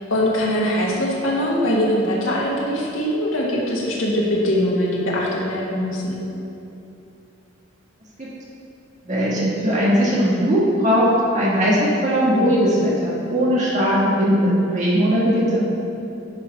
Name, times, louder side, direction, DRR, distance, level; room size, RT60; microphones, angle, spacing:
voice 1, 0.1-6.2, equal, 85° left, -4 dB, 1.8 m, -22 dB
voice 2, 9.0-11.1 11.3-15.6, equal, 40° right, -6 dB, 1.7 m, -19 dB
9.8 x 4.5 x 5.9 m, 2.7 s
head